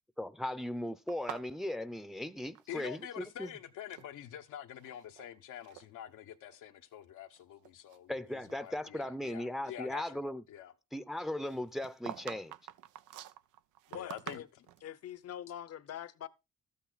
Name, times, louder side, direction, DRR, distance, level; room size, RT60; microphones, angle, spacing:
voice 1, 0.2-3.5 8.1-10.4 10.9-12.5, left 1 dB, ahead, 0.7 m, -38 dB
sound 1, 1.1-3.1 3.3-4.1 4.7-5.3 5.6-5.9 6.5-6.6 7.2-8.7 9.0-9.1 11.4-14.9, right 12 dB, 90° right, 0.6 m, -47 dB
voice 2, 2.7-10.2 10.5-10.7 13.9-14.4, left 11 dB, 85° left, 1.2 m, -46 dB
voice 3, 13.9-14.5 14.8-16.3, left 10 dB, 55° left, 0.9 m, -44 dB
13.0 x 8.6 x 4.0 m
cardioid pair, 90°, 30 cm